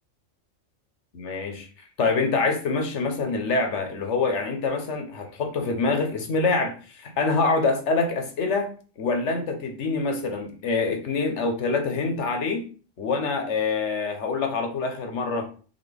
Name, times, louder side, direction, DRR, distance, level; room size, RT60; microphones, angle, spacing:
voice 1, 1.1-1.7 2.0-12.7 13.0-15.5, left 4 dB, 65° left, 4 dB, 1.1 m, -25 dB
4.1 x 3.8 x 3.4 m, 0.39 s
omnidirectional pair, 1.4 m